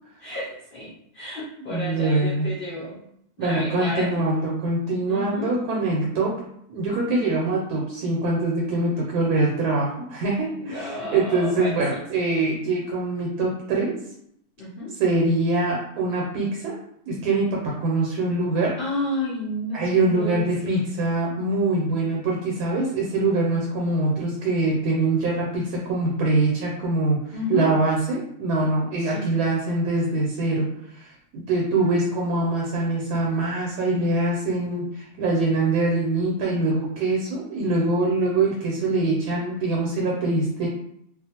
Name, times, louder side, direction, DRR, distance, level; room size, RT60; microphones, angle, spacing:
voice 1, 0.2-3.0 3.4-4.2 5.1-5.5 10.6-12.0 14.6-14.9 18.8-20.8 27.3-27.7 29.0-29.3 31.8-32.0, left 1 dB, 50° left, -7 dB, 0.7 m, -31 dB
voice 2, 1.6-2.5 3.4-6.4 6.7-14.0 14.9-16.8 17.1-18.8 19.7-27.2 27.5-40.7, right 2 dB, 80° right, -3 dB, 1.1 m, -24 dB
2.4 x 2.4 x 2.8 m, 0.73 s
omnidirectional pair, 1.6 m